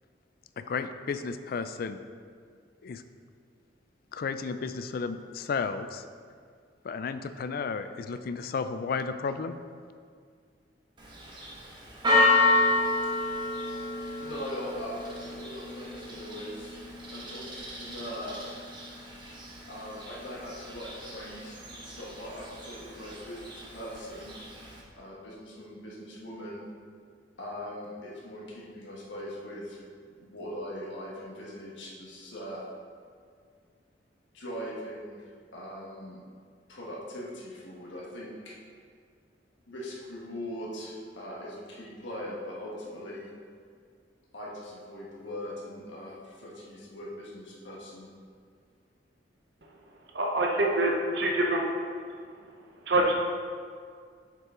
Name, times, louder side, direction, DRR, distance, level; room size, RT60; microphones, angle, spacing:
voice 1, 0.6-2.0 2.8-3.0 4.1-6.0 6.8-9.6, left 5 dB, 55° left, 10 dB, 0.3 m, -33 dB
Church bell, 11.0-24.8, left 2 dB, 25° right, 1.2 m, -31 dB
voice 2, 14.2-16.8 17.1-18.5 19.7-24.4 25.0-26.7 27.4-29.8 30.1-32.6 34.3-36.2 36.7-38.6 39.7-43.3 44.3-48.1, equal, 85° left, -4 dB, 1.4 m, -41 dB
voice 3, 50.1-51.6 52.9-53.1, right 1 dB, 65° right, 0 dB, 0.7 m, -25 dB
7.5 x 5.7 x 3.7 m, 2.1 s
head